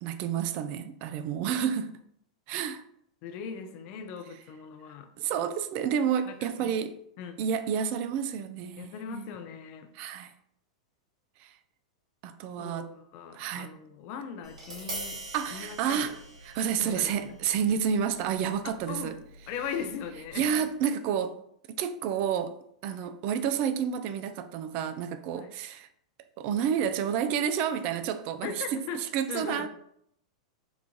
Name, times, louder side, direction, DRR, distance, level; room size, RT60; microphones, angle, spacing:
voice 1, 0.0-2.0 2.5-2.8 5.2-7.0 7.4-9.3 9.9-10.3 11.4-11.5 12.2-12.9 13.3-13.7 15.3-16.2 16.4-19.2 20.3-21.4 21.7-22.6 22.8-25.9 26.4-29.7, right 8 dB, 45° right, 0.3 m, -30 dB
voice 2, 3.2-5.1 6.3-6.7 7.2-7.4 8.8-9.9 12.6-15.2 15.5-16.1 16.7-17.4 18.6-19.1 19.5-20.6 22.9-23.1 25.3-25.5 28.4-29.0 29.3-29.7, left 6 dB, 50° left, 0.5 m, -39 dB
Tap, 14.4-20.6, right 2 dB, 70° right, 1.3 m, -44 dB
2.9 x 2.4 x 3.7 m
hypercardioid pair, 100°, 3 cm